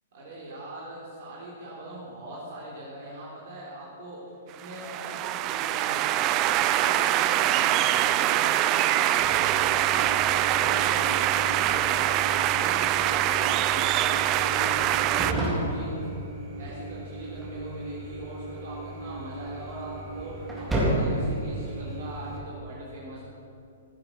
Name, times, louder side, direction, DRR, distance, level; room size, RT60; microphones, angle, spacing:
voice 1, 0.1-6.2 6.7-12.0 12.3-14.7 15.0-16.1 16.6-23.2, right 1 dB, 60° right, -6 dB, 3.6 m, -41 dB
sound 1, 4.6-15.3, right 13 dB, 35° right, 0.5 m, -24 dB
sound 2, 9.2-22.4, right 1 dB, 10° right, 3.9 m, -33 dB
16.5 x 8.1 x 6.3 m, 2.6 s
figure-of-eight pair, 115°, 0 cm